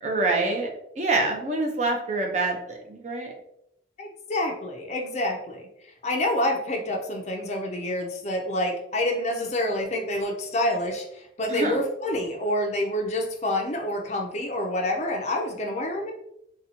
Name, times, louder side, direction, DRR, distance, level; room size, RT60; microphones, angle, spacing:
voice 1, 0.0-0.7 1.0-3.3 11.5-11.8, right 2 dB, 40° right, 1 dB, 0.6 m, -26 dB
voice 2, 4.0-5.7 6.0-16.1, left 1 dB, 35° left, 2 dB, 0.4 m, -27 dB
4.1 x 2.2 x 2.7 m, 0.77 s
head